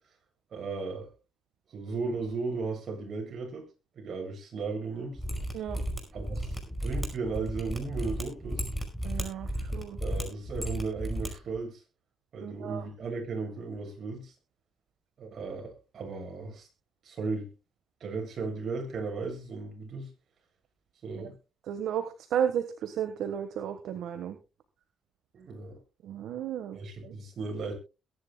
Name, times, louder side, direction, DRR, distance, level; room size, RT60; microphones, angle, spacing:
voice 1, 0.5-1.1 1.7-3.7 4.0-5.2 6.1-6.6 6.8-8.7 10.0-11.8 12.3-14.3 15.2-16.7 17.0-17.5 18.0-20.1 21.0-21.3 25.3-25.8 26.7-27.7, right 4 dB, 55° right, 2 dB, 7.5 m, -35 dB
Mechanisms, 5.2-11.3 11.5-11.6, equal, ahead, 5.2 m, -34 dB
voice 2, 5.5-5.8 9.0-10.0 12.4-12.8 21.7-22.0 22.3-24.4 26.0-26.8 27.0-27.1, right 9 dB, 75° right, 8 dB, 1.4 m, -33 dB
22.0 x 10.5 x 2.3 m, 0.29 s
cardioid pair, 90°, 0 cm